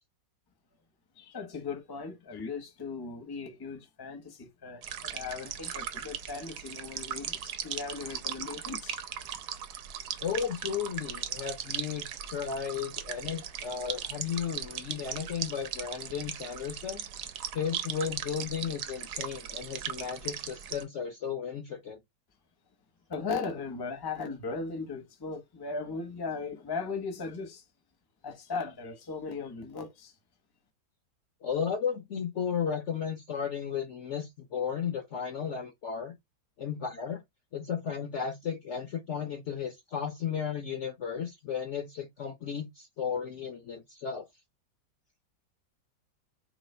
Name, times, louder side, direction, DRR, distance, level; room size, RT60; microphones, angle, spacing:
voice 1, 1.2-9.0 23.1-27.6 28.2-30.1, left 4 dB, 20° left, 0.6 m, -37 dB
sound 1, 4.8-20.8, right 9 dB, 75° right, 1.2 m, -38 dB
voice 2, 10.2-17.0 17.5-22.0 31.4-36.1 36.6-37.2 37.5-44.3, left 7 dB, 60° left, 0.8 m, -34 dB
3.1 x 3.0 x 4.2 m
omnidirectional pair, 1.9 m